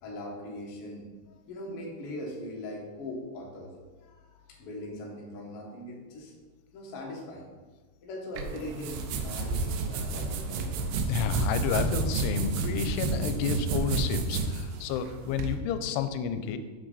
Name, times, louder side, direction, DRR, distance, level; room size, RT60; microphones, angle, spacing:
voice 1, 0.0-3.7 4.0-6.3 6.7-7.5 8.0-10.9, left 1 dB, 60° left, -2 dB, 1.5 m, -40 dB
sound 1, 8.4-15.5, right 4 dB, 85° right, 2.8 m, -30 dB
voice 2, 11.1-16.6, left 8 dB, 85° left, 9 dB, 2.6 m, -31 dB
6.3 x 6.3 x 4.0 m, 1.3 s
omnidirectional pair, 4.7 m